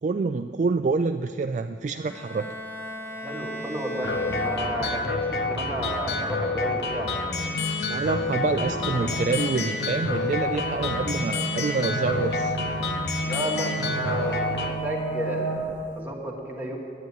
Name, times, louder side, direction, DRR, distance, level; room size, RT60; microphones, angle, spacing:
voice 1, 0.0-2.5 7.9-12.6, right 4 dB, 40° right, 8 dB, 0.3 m, -27 dB
Bowed string instrument, 2.1-5.2, equal, 10° left, 0.8 m, -37 dB
voice 2, 3.1-7.1 13.2-15.6 16.0-16.8, right 1 dB, 10° right, -2 dB, 2.0 m, -32 dB
sound 1, 4.0-14.7, left 3 dB, 60° left, 1.0 m, -28 dB
sound 2, 8.2-16.0, right 3 dB, 30° left, 1.5 m, -34 dB
10.5 x 9.9 x 9.0 m, 2.3 s
head